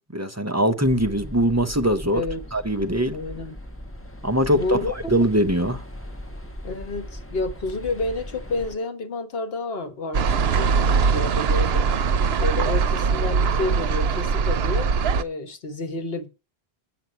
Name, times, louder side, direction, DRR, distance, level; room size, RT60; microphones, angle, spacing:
voice 1, 0.1-2.2 2.5-3.2 4.2-4.8 5.1-5.8, equal, 20° right, 0.6 m, -21 dB
sound 1, 0.8-8.8, left 1 dB, 15° left, 1.2 m, -38 dB
voice 2, 3.1-3.6 4.5-4.9 6.6-11.9 12.4-16.3, left 3 dB, 70° left, 1.5 m, -30 dB
sound 2, 10.1-15.2, right 5 dB, 80° right, 0.9 m, -21 dB
8.2 x 6.1 x 7.8 m
omnidirectional pair, 1.0 m